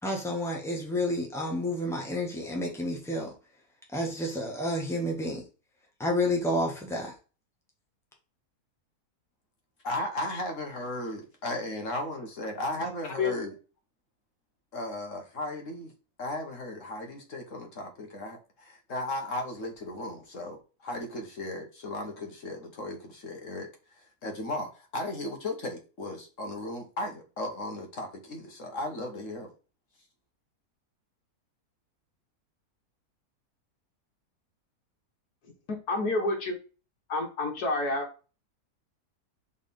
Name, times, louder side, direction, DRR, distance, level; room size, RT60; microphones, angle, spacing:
voice 1, 0.0-3.3 3.9-5.4 6.0-7.1, left 1 dB, ahead, 0 dB, 1.6 m, -30 dB
voice 2, 9.8-13.5 14.7-15.9 16.2-23.7 24.2-29.5, left 1 dB, 55° left, 3 dB, 1.7 m, -36 dB
voice 3, 35.9-36.6 37.1-38.1, left 2 dB, 75° left, 3 dB, 2.0 m, -28 dB
5.1 x 4.2 x 5.2 m, 0.34 s
omnidirectional pair, 1.7 m